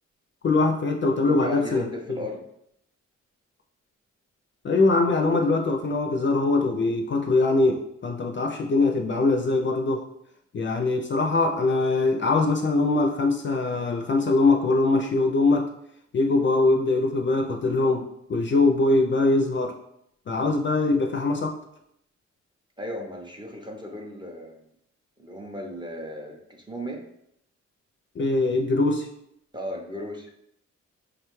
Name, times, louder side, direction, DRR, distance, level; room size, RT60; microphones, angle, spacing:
voice 1, 0.4-1.8 4.6-10.0 10.5-15.7 16.1-19.8 20.3-21.5 28.2-29.1, left 3 dB, 40° left, 3 dB, 0.4 m, -22 dB
voice 2, 1.2-2.4 22.8-24.6 25.2-27.0 28.5-28.6 29.5-30.3, left 1 dB, 15° right, 0 dB, 0.5 m, -36 dB
4.9 x 2.2 x 3.0 m, 0.75 s
cardioid pair, 115°, 29 cm